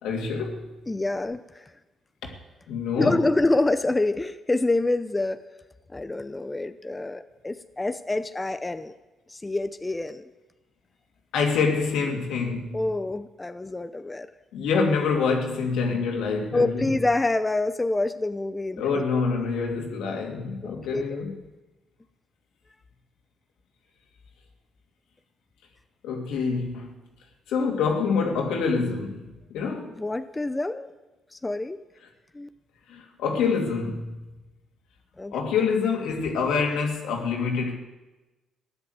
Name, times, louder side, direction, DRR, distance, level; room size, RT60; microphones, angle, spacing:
voice 1, 0.0-0.7 2.2-2.3 2.7-3.3 11.3-12.8 14.5-16.9 18.8-21.4 26.0-26.9 27.5-30.0 32.9-34.2 35.3-37.8, left 5 dB, 90° left, 2.6 m, -26 dB
voice 2, 0.9-1.7 3.0-5.4 5.9-8.9 9.3-10.3 12.7-14.3 16.5-19.0 20.6-21.0 30.0-30.9 31.3-31.8 32.3-32.5 35.2-35.3, left 2 dB, 15° left, 0.7 m, -27 dB
15.5 x 10.5 x 8.0 m
cardioid pair, 90°, 0 cm